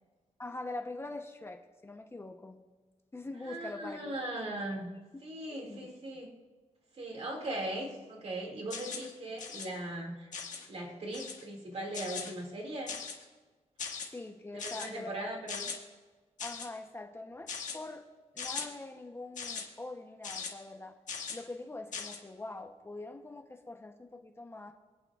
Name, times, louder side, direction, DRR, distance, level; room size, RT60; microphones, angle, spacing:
voice 1, 0.4-2.6 3.1-4.2 5.5-5.9 14.0-15.3 16.4-18.0 18.3-21.0 21.3-24.7, left 2 dB, 20° left, 4 dB, 0.7 m, -44 dB
voice 2, 3.4-6.3 6.9-10.3 10.7-13.0 14.5-15.7, right 1 dB, 55° right, 0 dB, 2.2 m, -39 dB
sound 1, 8.7-9.1 9.4-9.7 10.3-10.7 11.1-11.4 11.9-12.3 12.9-13.2 13.8-14.1 14.6-14.9 15.5-15.8 16.4-16.7 17.5-17.8 18.4-18.7 19.4-19.6 20.2-20.5 21.1-21.4 21.9-22.2, left 5 dB, 75° left, 1.6 m, -39 dB
26.0 x 8.7 x 2.4 m, 1.4 s
wide cardioid pair, 140°, 13 cm